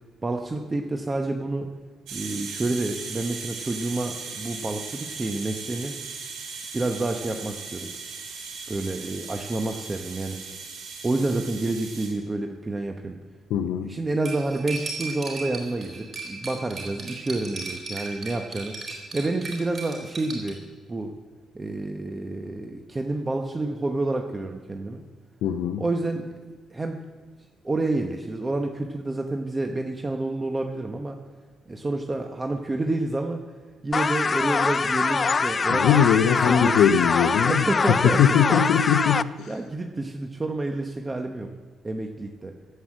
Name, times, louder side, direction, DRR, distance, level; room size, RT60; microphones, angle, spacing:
voice 1, 0.2-1.7 2.1-5.9 6.7-7.9 8.7-10.4 11.0-13.2 13.8-18.8 19.1-20.6 20.9-21.1 21.5-25.0 25.8-26.3 26.7-27.0 27.6-31.2 31.7-33.4 33.8-36.8 37.4-38.8 39.5-41.5 41.8-42.5, right 2 dB, 25° right, 4 dB, 0.9 m, -29 dB
sound 1, 2.1-12.1, right 5 dB, 85° right, 3.6 m, -37 dB
voice 2, 13.5-14.0 25.4-25.8 35.7-39.5, left 9 dB, 85° left, 8 dB, 0.6 m, -21 dB
Cutlery silverware, 14.2-20.5, right 4 dB, 45° right, 4.1 m, -36 dB
sound 2, 33.9-39.2, left 5 dB, 35° left, 0.4 m, -24 dB
16.5 x 5.6 x 7.6 m, 1.4 s
cardioid pair, 90°, 0 cm